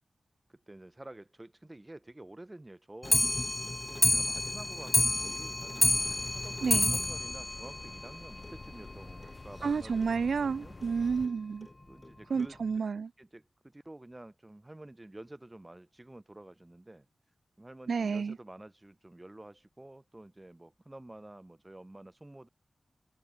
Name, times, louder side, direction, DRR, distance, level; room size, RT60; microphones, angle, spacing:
voice 1, 0.5-3.5 3.9-10.8 11.9-12.6 13.2-17.1 17.6-22.5, right 1 dB, 20° right, 6.0 m, -50 dB
Clock, 3.0-8.5 8.9-9.0 9.2-9.3 9.6-9.7 10.0-10.1 10.8-10.9 11.6-11.7 12.4-12.5, left 2 dB, 25° left, 0.4 m, -29 dB
sound 1, 5.8-11.3, left 3 dB, 40° left, 4.2 m, -48 dB
voice 2, 6.6-6.9 9.6-11.7 12.3-13.1 17.9-18.4, right 5 dB, 75° right, 2.7 m, -30 dB
wide cardioid pair, 70°, 0 cm